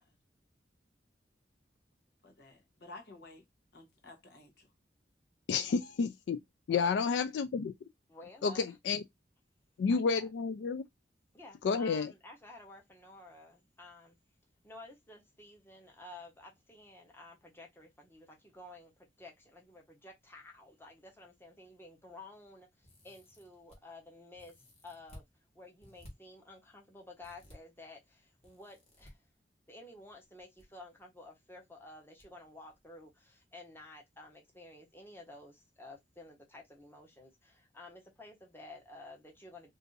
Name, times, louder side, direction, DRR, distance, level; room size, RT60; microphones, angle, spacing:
voice 1, 2.2-3.4 3.7-4.7, left 2 dB, 65° left, 1.0 m, -52 dB
voice 2, 5.5-6.4 6.7-7.7 8.4-9.0 9.8-10.8 11.6-12.1, left 5 dB, 85° left, 0.3 m, -30 dB
voice 3, 6.7-7.1 8.1-8.8 9.9-10.3 11.3-14.2 14.6-18.9 19.2-24.5 24.8-25.2 25.5-29.2 29.7-39.7, left 2 dB, 15° left, 0.9 m, -52 dB
sound 1, 22.8-23.8 24.3-25.3 25.8-26.1 27.2-27.6 28.4-29.1 30.2-30.6 30.9-31.0 32.2-32.3 32.7-32.8, equal, 40° left, 1.3 m, -55 dB
2.6 x 2.5 x 3.8 m
head